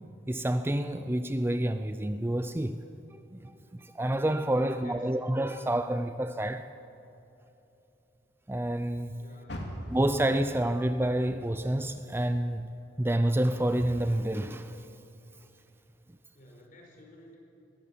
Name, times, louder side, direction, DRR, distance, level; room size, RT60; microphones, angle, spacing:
voice 1, 0.3-2.8 3.1-6.7 8.5-9.2 9.9-12.7 13.0-14.9, right 1 dB, 10° right, 0.4 m, -28 dB
voice 2, 4.6-5.0 9.2-9.9 16.3-17.4, left 1 dB, 45° left, 5.1 m, -53 dB
Car, 9.4-12.7 13.1-14.5 15.0-15.1 15.7-15.8, equal, 65° left, 2.7 m, -44 dB
21.0 x 15.0 x 8.4 m
head